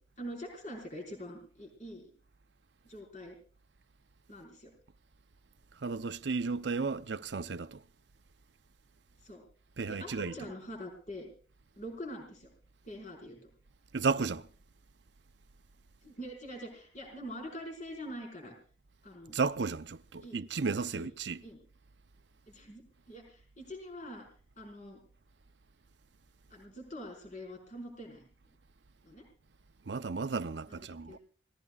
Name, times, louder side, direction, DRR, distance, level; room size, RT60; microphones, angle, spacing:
voice 1, 0.2-2.1 2.8-3.4 4.3-4.7 9.2-9.4 9.9-11.3 11.8-12.5 12.8-13.5 16.0-18.5 19.0-19.4 20.2-20.4 20.9-21.1 21.4-21.6 22.5-24.3 24.6-25.0 26.5-28.2 29.0-29.3 30.7-30.8 31.1-31.2, equal, 45° left, 5.1 m, -44 dB
voice 2, 5.8-7.8 9.8-10.3 13.9-14.5 19.3-21.4 29.9-31.2, right 4 dB, 70° right, 0.6 m, -33 dB
27.5 x 18.5 x 2.4 m
head